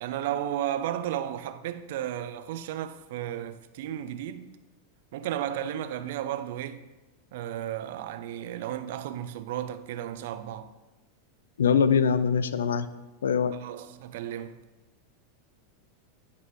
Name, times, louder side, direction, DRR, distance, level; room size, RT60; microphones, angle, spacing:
voice 1, 0.0-4.5 5.1-6.9 7.3-10.7 13.6-14.6, right 11 dB, 65° right, 0.5 m, -34 dB
voice 2, 11.6-12.9 13.2-13.5, left 6 dB, 80° left, 0.4 m, -23 dB
9.8 x 5.2 x 3.1 m
hypercardioid pair, 100°, 0 cm